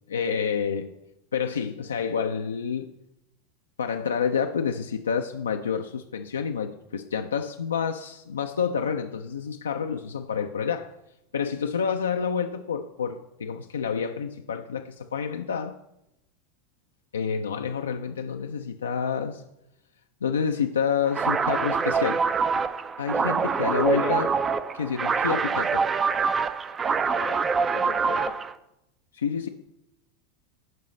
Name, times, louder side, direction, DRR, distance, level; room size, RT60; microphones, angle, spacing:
voice 1, 0.1-0.9 1.3-2.9 3.8-10.9 11.3-15.8 17.1-19.4 20.2-22.2 23.0-24.3 24.7-25.8 29.1-29.5, left 6 dB, 75° left, 0.3 m, -28 dB
sound 1, 21.1-28.5, right 5 dB, 25° right, 0.4 m, -25 dB
voice 2, 23.6-24.4 27.0-27.5 27.7-28.4, left 9 dB, 45° left, 0.7 m, -37 dB
10.5 x 5.3 x 3.2 m
figure-of-eight pair, 85°, 0 cm